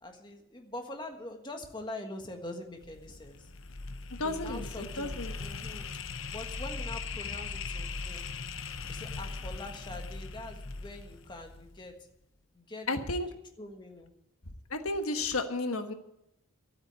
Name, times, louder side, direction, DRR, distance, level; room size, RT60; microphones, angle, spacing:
voice 1, 0.0-3.5 4.2-5.9 6.3-8.2 8.9-11.9 12.5-13.0 13.6-14.1, left 2 dB, 20° left, 4 dB, 1.5 m, -44 dB
sound 1, 2.8-11.9, left 4 dB, 60° left, 0.8 m, -40 dB
voice 2, 4.2-5.4 12.9-13.3 14.7-15.9, left 2 dB, 85° left, 7 dB, 1.3 m, -32 dB
13.0 x 8.8 x 9.4 m, 0.82 s
head